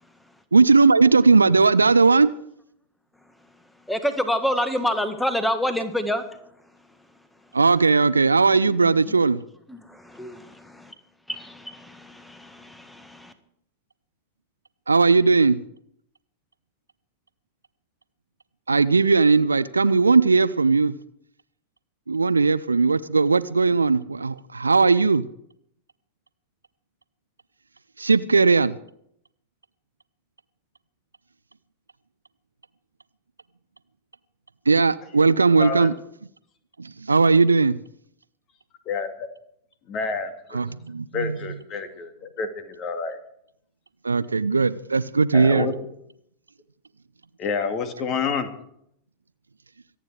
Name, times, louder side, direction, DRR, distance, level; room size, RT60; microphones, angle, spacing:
voice 1, 0.5-2.3 7.5-9.4 14.9-15.6 18.7-20.9 22.1-25.2 28.0-28.8 34.7-35.9 36.8-37.8 40.5-41.4 44.0-45.7, right 4 dB, 80° right, 17 dB, 0.5 m, -18 dB
voice 2, 3.9-6.2 9.7-10.9 11.3-13.3, equal, 5° left, 10 dB, 1.7 m, -27 dB
voice 3, 38.9-39.3 39.9-40.6 41.1-43.2 45.3-45.8 47.4-48.5, left 5 dB, 35° left, 8 dB, 2.2 m, -28 dB
25.0 x 9.2 x 4.7 m, 0.71 s
figure-of-eight pair, 90°, 0 cm